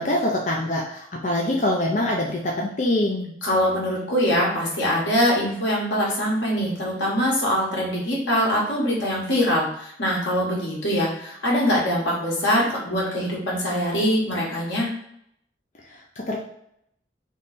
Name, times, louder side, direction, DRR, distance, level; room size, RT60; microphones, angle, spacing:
voice 1, 0.0-3.3 15.9-16.4, left 1 dB, 40° left, -2 dB, 0.6 m, -24 dB
voice 2, 3.4-14.9, equal, 85° left, -4 dB, 1.8 m, -23 dB
3.6 x 3.2 x 4.1 m, 0.73 s
head